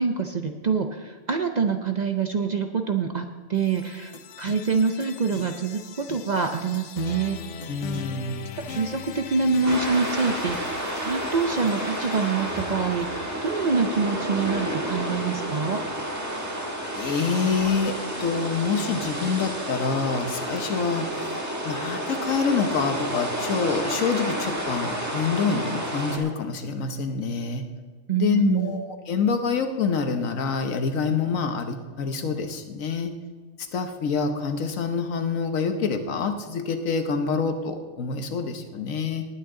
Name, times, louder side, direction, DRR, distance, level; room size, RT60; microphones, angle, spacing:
voice 1, 0.0-7.4 8.6-15.8 28.1-28.8, right 5 dB, 50° right, 6 dB, 0.5 m, -26 dB
sound 1, 3.5-13.5, left 7 dB, 70° left, 1.0 m, -41 dB
sound 2, 4.1-4.2 4.5-4.6 5.0-5.1 5.3-5.4 6.1-6.2 6.7-6.8 7.1-7.2 7.6-7.7 7.9-8.0 8.7-8.8 9.7-9.8, left 5 dB, 35° left, 0.7 m, -40 dB
voice 2, 7.7-8.5 16.9-21.3 21.6-27.7 28.1-33.1 33.7-39.3, left 5 dB, 90° left, 7 dB, 1.4 m, -26 dB
sound 3, 9.6-26.2, right 1 dB, 15° right, 1.4 m, -30 dB
19.0 x 8.8 x 3.8 m, 1.4 s
omnidirectional pair, 1.3 m